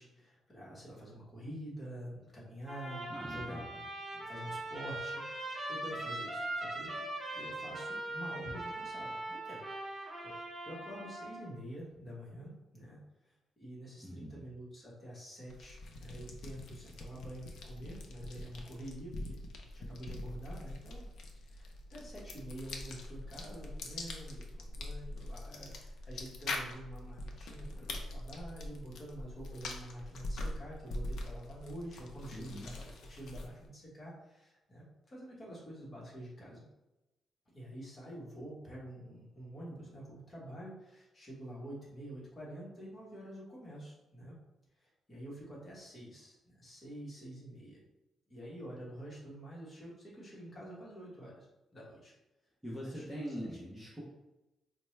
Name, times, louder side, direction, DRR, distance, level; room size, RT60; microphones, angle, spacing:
voice 1, 0.0-6.9 7.3-10.4 10.6-13.0 13.2-19.4 19.7-21.0 21.4-36.6 37.5-44.4 44.8-47.8 48.3-51.5 51.7-52.1 52.8-53.0 53.4-53.5, right 1 dB, 25° left, -5 dB, 1.2 m, -47 dB
Trumpet, 2.7-11.4, right 2 dB, 20° right, 1.0 m, -41 dB
voice 2, 3.1-3.6 14.0-14.4 32.3-32.7 52.6-54.0, equal, ahead, -7 dB, 0.7 m, -42 dB
sound 1, 15.5-33.7, left 2 dB, 70° left, 0.5 m, -43 dB
4.4 x 2.2 x 3.1 m, 0.98 s
cardioid pair, 160°, 0 cm